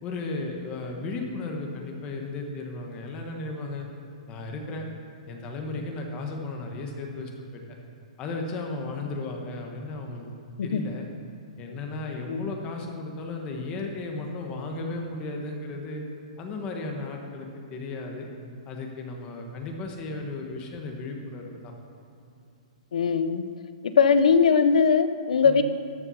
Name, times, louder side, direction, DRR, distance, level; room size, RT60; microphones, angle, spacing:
voice 1, 0.0-3.9 4.3-4.8 5.3-7.8 8.2-10.3 10.6-11.1 11.6-16.0 16.4-18.3 18.7-21.7 25.4-25.6, left 3 dB, 25° left, 2 dB, 1.3 m, -35 dB
voice 2, 22.9-23.4 23.8-25.6, left 6 dB, 80° left, 11 dB, 0.7 m, -20 dB
13.0 x 5.7 x 5.6 m, 2.6 s
hypercardioid pair, 155°, 4 cm